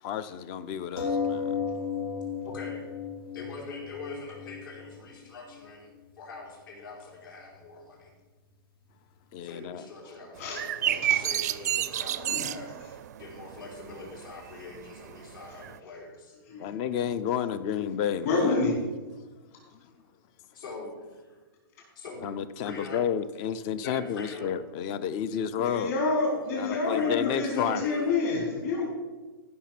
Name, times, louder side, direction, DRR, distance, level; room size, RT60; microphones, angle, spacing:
voice 1, 0.0-1.6 9.3-9.9 16.6-18.6 22.2-25.9 26.6-27.9, left 8 dB, 20° left, 0.4 m, -31 dB
sound 1, 1.0-6.0 6.7-6.8 7.1-7.2, left 6 dB, 90° left, 2.4 m, -34 dB
voice 2, 2.4-2.9 3.3-5.9 6.2-8.1 9.4-16.3 20.5-21.4 21.9-22.3 22.6-23.0 23.8-24.5 26.3-28.2, left 3 dB, 65° left, 4.5 m, -43 dB
voice 3, 10.4-11.3 12.2-12.6 16.5-16.7 18.2-18.8 25.6-28.9, left 3 dB, 40° left, 4.8 m, -28 dB
sound 2, 10.4-15.8, right 12 dB, 45° right, 0.4 m, -31 dB
15.0 x 6.6 x 5.9 m
hypercardioid pair, 175°, 12 cm